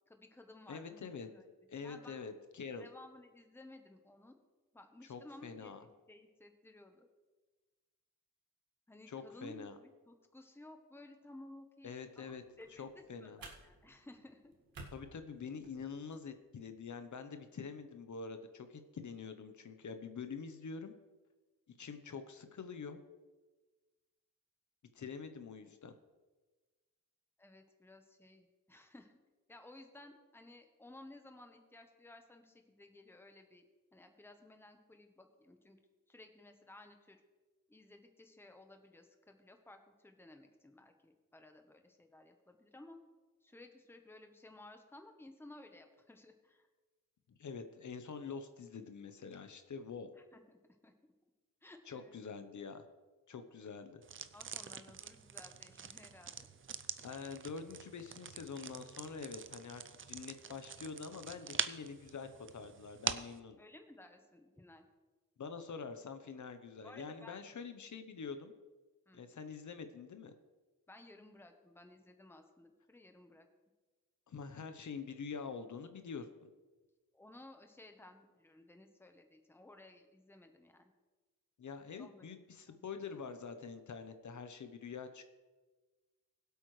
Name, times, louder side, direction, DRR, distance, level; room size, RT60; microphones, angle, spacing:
voice 1, 0.1-1.4 1.8-2.3 2.8-4.4 4.7-7.1 8.9-14.5 27.4-29.2 29.5-33.6 33.9-35.8 36.1-37.2 37.7-43.0 43.4-46.7 50.1-50.9 51.6-52.2 54.3-56.5 63.6-64.9 66.8-67.4 69.1-69.2 70.9-73.5 77.1-80.9 82.0-82.8, left 2 dB, 5° left, 5 dB, 1.0 m, -57 dB
voice 2, 0.7-1.3 1.7-2.9 5.1-5.8 9.1-9.7 11.8-12.4 12.8-13.4 14.9-20.9 21.8-23.0 24.9-25.9 47.4-50.1 51.9-52.8 53.3-54.0 57.0-63.6 65.4-68.5 69.1-70.3 74.3-76.3 81.6-85.3, left 5 dB, 60° left, 8 dB, 0.9 m, -46 dB
sound 1, 12.3-16.3, right 3 dB, 90° right, 2.0 m, -56 dB
sound 2, 54.0-63.4, right 7 dB, 40° right, 0.5 m, -44 dB
21.5 x 8.1 x 3.2 m, 1.3 s
wide cardioid pair, 155°, 33 cm